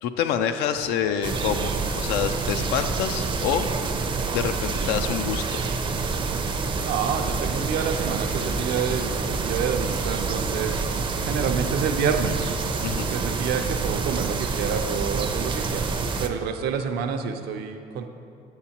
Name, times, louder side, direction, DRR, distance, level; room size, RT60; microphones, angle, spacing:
voice 1, 0.0-3.9 4.3-5.6 12.8-13.1, left 8 dB, 90° left, 8 dB, 0.4 m, -27 dB
sound 1, 1.2-16.3, right 4 dB, 30° right, 0.5 m, -27 dB
voice 2, 6.8-10.8 11.3-12.4 13.1-15.9 16.2-18.1, right 6 dB, 75° right, 6 dB, 0.6 m, -28 dB
8.2 x 7.0 x 2.9 m, 2.6 s
cardioid pair, 110°, 17 cm